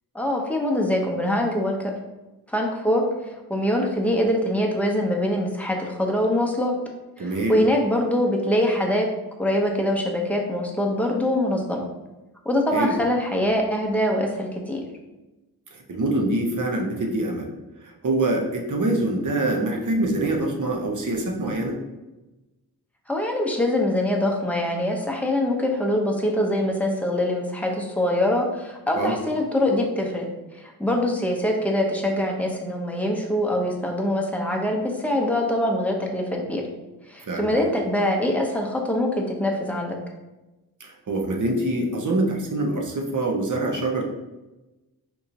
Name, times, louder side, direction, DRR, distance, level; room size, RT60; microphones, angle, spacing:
voice 1, 0.1-1.8 2.5-6.7 7.2-9.1 9.4-11.9 12.4-14.8 23.1-30.3 30.5-36.6 37.1-40.0, left 1 dB, 5° left, 0 dB, 0.8 m, -24 dB
voice 2, 7.2-7.6 12.7-13.0 15.7-17.5 17.8-21.8 29.0-29.1 37.2-37.5 40.8-44.0, right 2 dB, 50° right, 1 dB, 0.9 m, -25 dB
4.6 x 2.7 x 2.6 m, 1.1 s
cardioid pair, 50°, 39 cm